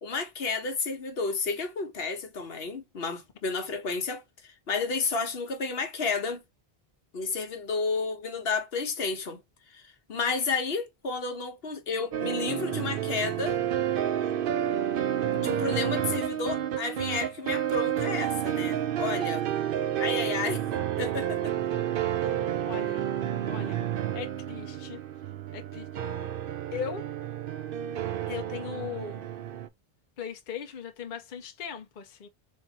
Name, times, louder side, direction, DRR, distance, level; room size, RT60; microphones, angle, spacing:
voice 1, 0.0-4.2 4.7-6.4 7.1-9.4 9.7-9.8 10.1-13.6 15.3-19.5 20.0-20.6 21.0-21.5, left 4 dB, 70° left, 1.2 m, -31 dB
sound 1, 12.1-29.7, right 10 dB, 65° right, 0.7 m, -30 dB
voice 2, 22.6-23.0 23.4-23.9 24.1-25.0 25.5-25.9 26.7-27.0 28.3-29.2 30.2-32.3, left 8 dB, 55° left, 0.8 m, -38 dB
3.7 x 2.6 x 3.9 m
omnidirectional pair, 1.1 m